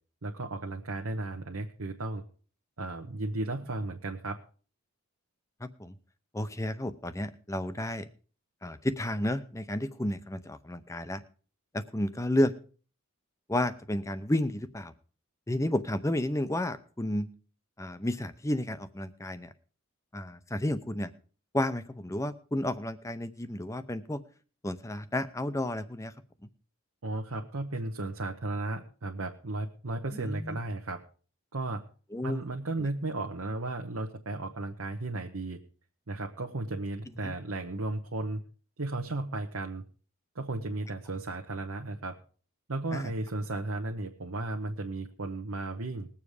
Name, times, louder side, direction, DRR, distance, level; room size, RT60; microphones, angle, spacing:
voice 1, 0.2-2.2 2.8-4.4 27.0-31.0 31.5-31.8 32.2-35.6 36.1-38.4 38.8-39.8 40.3-42.2 42.7-46.1, right 2 dB, 70° right, 2 dB, 1.0 m, -34 dB
voice 2, 5.6-6.0 6.3-8.1 8.6-11.2 11.7-12.5 13.5-14.9 15.5-17.3 17.8-19.5 20.1-21.1 21.5-24.2 24.6-26.1 30.2-30.6 32.1-32.4 32.8-32.9 37.2-37.3 42.9-43.1, left 1 dB, 15° left, 12 dB, 0.6 m, -31 dB
20.0 x 7.2 x 4.9 m, 0.40 s
head